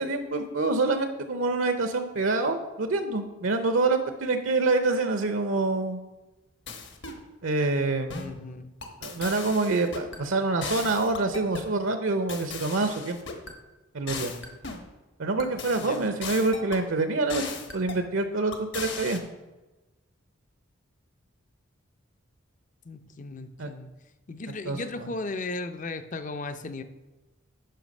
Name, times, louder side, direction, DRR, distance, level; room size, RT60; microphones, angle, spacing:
voice 1, 0.0-6.0 7.4-8.2 9.0-13.2 13.9-14.3 15.2-19.2 23.6-23.7 24.7-25.1, right 3 dB, 70° right, 8 dB, 0.7 m, -26 dB
sound 1, 6.7-7.2 8.1-8.4 8.8-10.2 10.6-11.7 12.3-13.5 14.1-14.9 15.4-16.8 17.3-18.0 18.5-19.2, left 4 dB, 55° left, 1.1 m, -38 dB
voice 2, 8.1-8.7 15.7-16.1 22.8-23.9 24.3-26.8, left 3 dB, 35° left, 11 dB, 0.5 m, -36 dB
9.2 x 5.8 x 5.3 m, 1.1 s
head